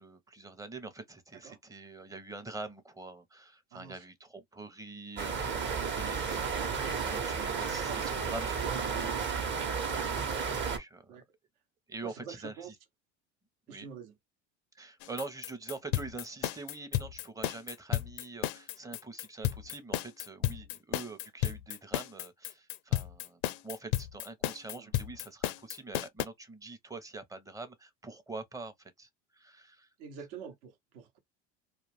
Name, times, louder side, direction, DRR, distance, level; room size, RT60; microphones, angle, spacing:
voice 1, 0.0-9.3 10.0-11.2 11.9-12.7 13.7-13.9 14.7-29.9, right 3 dB, 10° right, 0.7 m, -45 dB
voice 2, 3.7-4.0 7.4-8.2 11.1-11.2 12.0-12.7 13.7-14.2 18.8-19.0 24.7-24.9 30.0-31.2, right 6 dB, 65° right, 0.9 m, -47 dB
sound 1, 5.2-10.8, right 6 dB, 35° right, 0.9 m, -32 dB
sound 2, 15.0-26.3, left 13 dB, 70° left, 0.5 m, -33 dB
2.4 x 2.3 x 3.2 m
hypercardioid pair, 85°, 33 cm